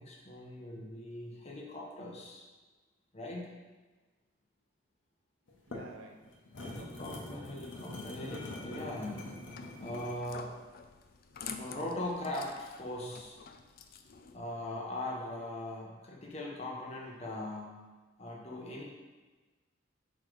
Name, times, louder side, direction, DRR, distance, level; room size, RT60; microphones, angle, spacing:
voice 1, 0.0-2.4 3.1-3.5 6.6-9.3 9.8-10.6 11.6-13.4 14.3-17.8 18.2-18.8, left 1 dB, 30° left, -2 dB, 0.9 m, -40 dB
sound 1, 5.5-10.3, left 1 dB, 70° left, 0.9 m, -44 dB
voice 2, 5.5-7.1 11.0-11.6 13.7-13.8 14.4-14.5, right 3 dB, 85° right, 4 dB, 0.7 m, -55 dB
sound 2, 9.2-14.4, left 6 dB, 50° left, 0.4 m, -48 dB
5.0 x 4.2 x 4.6 m, 1.3 s
head